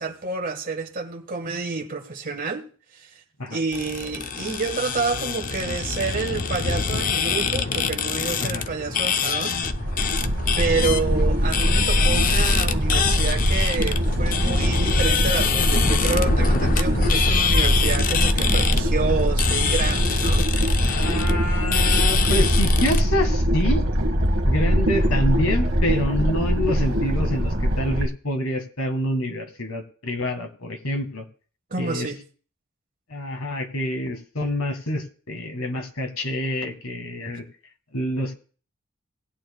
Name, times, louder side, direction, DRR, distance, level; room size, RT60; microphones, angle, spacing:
voice 1, 0.0-2.6 2.9-3.1 3.5-9.6 10.6-20.5 31.7-32.2 37.3-37.4, right 4 dB, 40° right, 1.4 m, -29 dB
sound 1, 3.7-23.0, left 6 dB, 40° left, 0.5 m, -26 dB
sound 2, 9.6-28.1, equal, 60° right, 1.4 m, -22 dB
voice 2, 20.8-23.8 24.5-31.2 31.8-32.1 33.1-37.4 37.9-38.3, left 1 dB, 70° left, 1.6 m, -27 dB
19.0 x 8.9 x 2.2 m
head